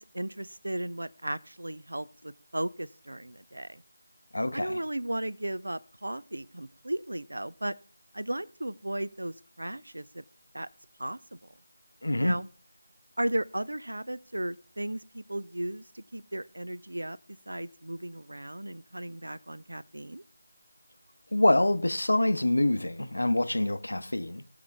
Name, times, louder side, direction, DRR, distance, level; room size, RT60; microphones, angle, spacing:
voice 1, 0.0-3.8 4.5-7.7 8.1-10.2 10.5-10.7 11.0-11.4 12.2-12.4 13.2-17.2 17.5-20.2, right 1 dB, 75° right, 0.6 m, -35 dB
voice 2, 4.3-4.8 12.0-12.4 21.3-24.4, left 1 dB, 70° left, 0.9 m, -26 dB
20.5 x 6.8 x 3.5 m
figure-of-eight pair, 165°, 0 cm